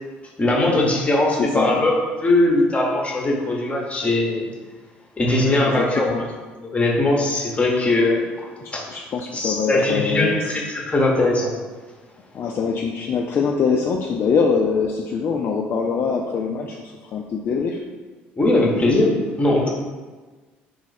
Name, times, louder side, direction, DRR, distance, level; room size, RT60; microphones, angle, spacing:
voice 1, 0.4-4.5 5.2-6.1 6.7-8.5 8.7-8.9 9.3-11.5 18.3-19.1 19.4-19.7, left 2 dB, 20° left, -1 dB, 0.9 m, -20 dB
voice 2, 1.4-1.7 5.6-6.2 8.6-10.5 12.3-17.8, left 5 dB, 45° left, 1 dB, 0.3 m, -23 dB
3.1 x 2.3 x 4.0 m, 1.3 s
hypercardioid pair, 65°, 5 cm